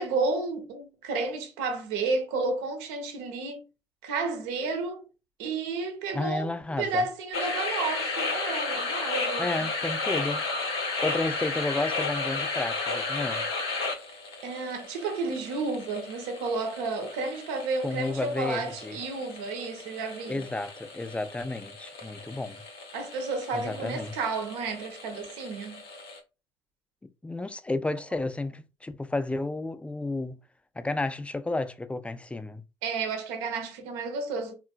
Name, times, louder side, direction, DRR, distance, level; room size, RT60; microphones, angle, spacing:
voice 1, 0.0-3.6 4.0-5.0 5.4-6.5 6.8-9.7 14.4-20.4 22.9-25.8 32.8-34.5, right 3 dB, 70° right, 0.8 m, -31 dB
voice 2, 6.1-7.1 9.4-10.4 11.0-13.5 17.8-19.0 20.3-22.6 23.5-24.1 27.2-30.4 30.8-32.6, left 2 dB, 10° left, 0.4 m, -32 dB
sound 1, 7.3-26.2, left 3 dB, 75° left, 0.7 m, -34 dB
3.7 x 2.1 x 2.3 m
figure-of-eight pair, 55°, 13 cm